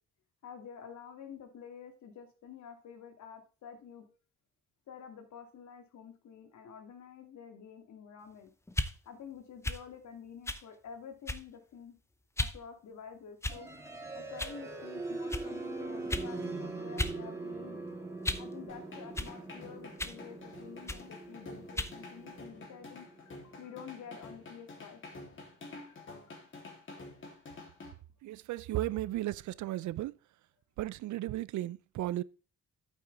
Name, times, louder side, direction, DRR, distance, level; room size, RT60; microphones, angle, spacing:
voice 1, 0.4-4.1 4.9-8.5 9.1-12.0 12.4-13.7 14.1-17.9 18.4-25.0 25.9-26.4, left 7 dB, 70° left, 2.4 m, -49 dB
sound 1, 8.7-8.9 9.6-9.8 10.5-10.7 11.3-11.6 12.4-12.6 13.4-13.8 14.4-14.6 15.3-15.5 16.1-16.3 17.0-17.2 17.5-18.5 19.2-19.3 20.0-20.2 20.9-21.1 21.8-22.0, left 2 dB, 10° left, 0.7 m, -35 dB
sound 2, 13.5-25.4, right 3 dB, 10° right, 3.2 m, -43 dB
sound 3, 18.7-27.9, left 3 dB, 40° left, 3.2 m, -49 dB
voice 2, 28.2-30.1 30.8-32.2, right 15 dB, 75° right, 0.5 m, -35 dB
9.2 x 8.4 x 3.4 m
cardioid pair, 90°, 30 cm